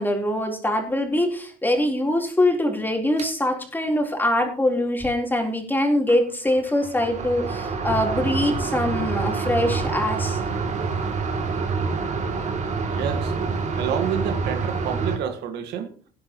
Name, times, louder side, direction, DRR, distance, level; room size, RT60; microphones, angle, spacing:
voice 1, 0.0-10.4, left 1 dB, 10° left, 4.0 m, -23 dB
sound 1, 3.2-3.3 6.1-6.2 6.5-15.2, right 4 dB, 45° right, 2.8 m, -27 dB
voice 2, 12.8-13.3 13.8-15.9, right 8 dB, 80° right, 1.8 m, -29 dB
17.5 x 10.5 x 3.1 m
cardioid pair, 110°, 17 cm